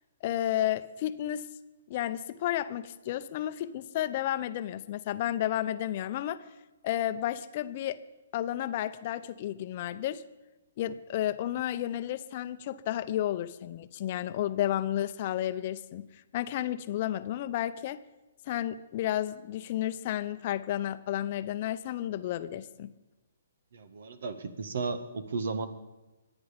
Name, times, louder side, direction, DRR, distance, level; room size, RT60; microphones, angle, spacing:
voice 1, 0.2-1.5 1.9-6.4 6.8-8.0 8.3-10.2 10.8-16.1 16.3-18.0 18.5-22.9, left 12 dB, 45° left, 13 dB, 0.7 m, -32 dB
voice 2, 23.7-25.7, right 4 dB, 65° right, 11 dB, 1.6 m, -34 dB
24.0 x 9.3 x 5.2 m, 1.1 s
hypercardioid pair, 140°, 0 cm